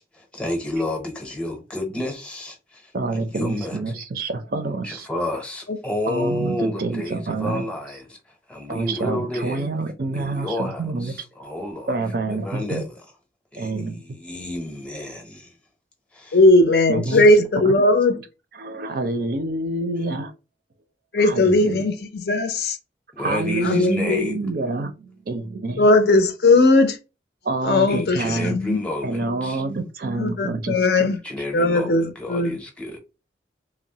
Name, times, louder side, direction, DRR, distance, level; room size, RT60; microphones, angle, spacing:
voice 1, 0.0-2.9 3.3-3.9 4.8-9.8 10.1-11.9 12.3-13.0 13.5-15.6 16.1-16.4 17.1-17.2 23.1-24.5 27.9-29.6 31.2-33.0, left 1 dB, 5° left, 0.6 m, -30 dB
voice 2, 2.9-5.1 6.1-7.7 8.7-11.1 11.9-12.8 13.6-14.0 16.9-17.3 17.7-17.8 18.6-20.3 21.2-21.8 23.2-25.9 27.4-28.6 29.0-31.1, right 3 dB, 55° right, 0.4 m, -27 dB
voice 3, 16.3-18.2 21.1-22.8 23.6-24.3 25.8-27.0 27.6-28.8 30.1-31.2 31.5-32.6, left 2 dB, 60° left, 0.5 m, -18 dB
3.0 x 2.0 x 2.7 m
head